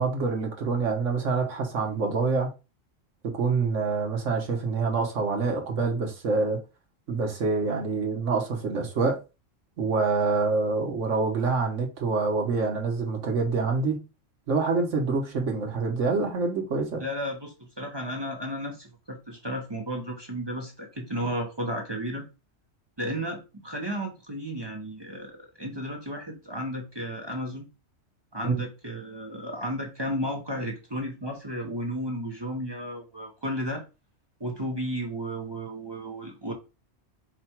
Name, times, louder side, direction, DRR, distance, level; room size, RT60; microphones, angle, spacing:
voice 1, 0.0-2.5 3.3-6.6 7.1-9.2 9.8-14.0 14.5-17.0 28.4-28.6, right 4 dB, 70° right, 1.4 m, -26 dB
voice 2, 17.0-22.3 23.0-27.7 28.3-33.8 34.4-36.5, equal, 25° right, 0.7 m, -33 dB
4.9 x 2.3 x 4.3 m
omnidirectional pair, 1.3 m